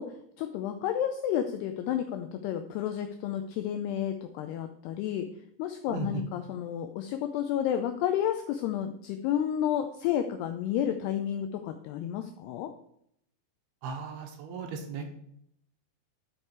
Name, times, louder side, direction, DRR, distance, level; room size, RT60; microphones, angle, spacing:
voice 1, 0.0-5.3 5.6-12.7, left 10 dB, 80° left, 7 dB, 2.4 m, -31 dB
voice 2, 5.9-6.2 13.8-15.1, right 4 dB, 75° right, 4 dB, 2.7 m, -36 dB
13.0 x 4.8 x 4.6 m, 0.71 s
omnidirectional pair, 5.3 m